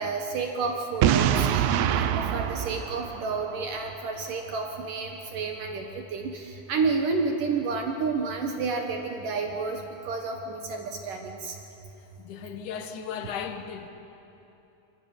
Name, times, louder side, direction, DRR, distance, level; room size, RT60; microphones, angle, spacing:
voice 1, 0.0-11.6, right 4 dB, 65° right, 2.8 m, -30 dB
Boom, 1.0-3.9, right 10 dB, 85° right, 3.0 m, -25 dB
voice 2, 12.2-13.9, left 7 dB, 60° left, 2.6 m, -36 dB
26.5 x 22.5 x 9.8 m
omnidirectional pair, 4.6 m